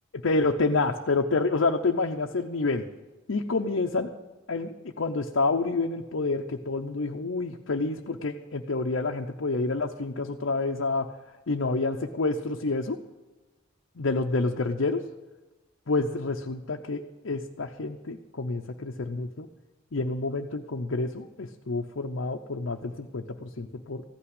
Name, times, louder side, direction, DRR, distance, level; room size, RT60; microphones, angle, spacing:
voice 1, 0.1-2.8 3.3-4.1 4.5-11.1 11.5-13.0 14.0-15.0 15.9-19.5 19.9-24.0, left 3 dB, 70° left, 1 dB, 0.7 m, -28 dB
15.0 x 5.9 x 9.7 m, 1.2 s
head